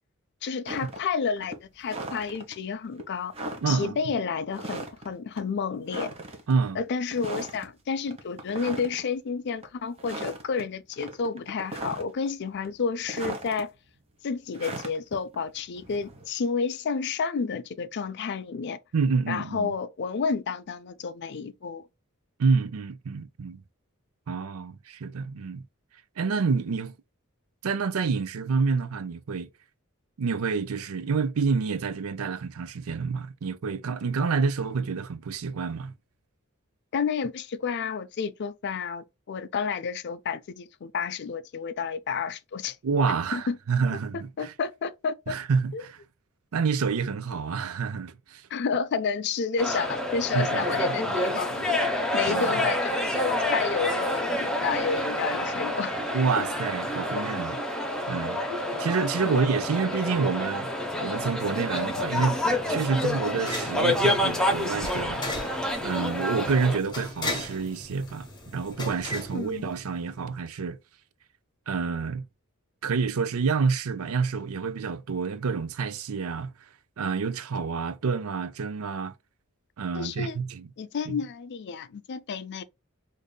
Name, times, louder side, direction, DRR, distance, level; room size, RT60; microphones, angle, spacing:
voice 1, 0.4-3.3 3.7-6.1 6.8-13.7 14.2-18.8 19.3-21.8 36.9-42.8 43.3-43.6 44.1-45.4 45.7-45.8 48.5-51.8 52.1-56.0 56.4-56.5 59.2-59.5 69.3-69.7 79.9-80.4 80.8-82.6, left 5 dB, 50° left, 0.4 m, -30 dB
sound 1, 0.7-1.1 1.4-2.5 3.0-3.1 3.3-3.9 4.5-5.1 5.4-5.5 5.9-6.5 7.1-7.7 8.1-9.1 9.5-9.7 10.0-10.6 10.9-12.3 12.6-13.6 14.5-16.3, right 2 dB, 30° right, 1.0 m, -37 dB
voice 2, 3.6-4.0 6.5-6.8 18.9-19.7 22.4-23.6 24.3-25.6 26.2-27.0 27.6-29.5 30.2-35.9 42.8-44.5 45.3-46.0 46.5-48.5 50.3-50.9 52.2-52.6 56.1-57.6 58.1-58.4 58.8-60.7 61.0-62.4 62.7-65.5 65.8-70.8 71.7-72.3 72.8-76.5 77.0-79.1 79.8-80.7 81.1-81.2, right 5 dB, 80° right, 0.5 m, -28 dB
sound 2, 49.6-66.8, left 1 dB, 5° left, 0.8 m, -28 dB
water dispenser, 62.4-70.2, left 1 dB, 20° left, 1.1 m, -38 dB
5.1 x 2.6 x 2.2 m
head